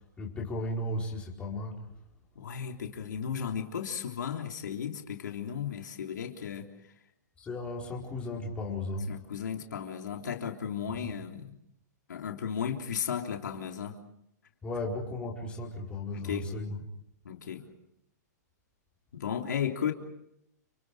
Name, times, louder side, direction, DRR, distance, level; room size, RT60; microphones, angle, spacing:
voice 1, 0.2-1.8 7.4-9.1 11.0-11.1 14.6-16.8, left 1 dB, 10° left, -2 dB, 4.8 m, -35 dB
voice 2, 2.4-6.7 9.1-11.6 12.1-14.0 16.1-16.5 17.3-17.7 19.1-19.9, left 8 dB, 85° left, 2 dB, 3.5 m, -35 dB
30.0 x 27.5 x 5.0 m, 0.79 s
hypercardioid pair, 160°, 10 cm